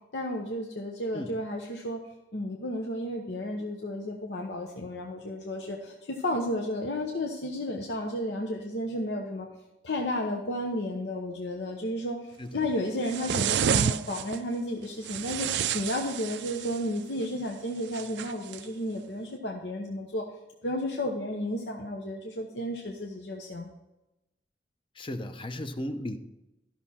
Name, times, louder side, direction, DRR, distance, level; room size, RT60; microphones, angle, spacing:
voice 1, 0.1-2.0 2.3-9.5 9.8-12.2 12.5-20.2 20.6-23.7, left 1 dB, 75° left, 1 dB, 0.9 m, -32 dB
sound 1, 13.1-14.4 15.0-16.9 17.9-18.6, right 8 dB, 75° right, 0.4 m, -29 dB
voice 2, 25.0-26.2, left 1 dB, 30° left, 8 dB, 0.7 m, -35 dB
13.0 x 6.1 x 4.3 m, 0.97 s
head